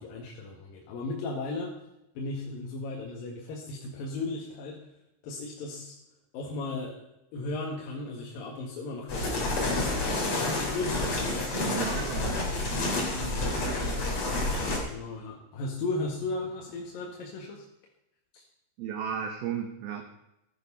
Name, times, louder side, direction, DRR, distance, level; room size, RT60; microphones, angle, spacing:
voice 1, 0.0-1.7 2.1-4.8 5.2-5.9 6.3-7.0 7.3-11.6 13.2-13.4 14.9-17.6 18.3-18.4, left 2 dB, 60° left, -1 dB, 2.9 m, -36 dB
sound 1, 9.1-14.8, left 2 dB, 30° left, 3.2 m, -29 dB
voice 2, 11.7-12.6 13.1-14.0 18.8-20.0, right 8 dB, 75° right, 5 dB, 2.4 m, -35 dB
14.5 x 11.0 x 5.7 m, 0.87 s
omnidirectional pair, 5.7 m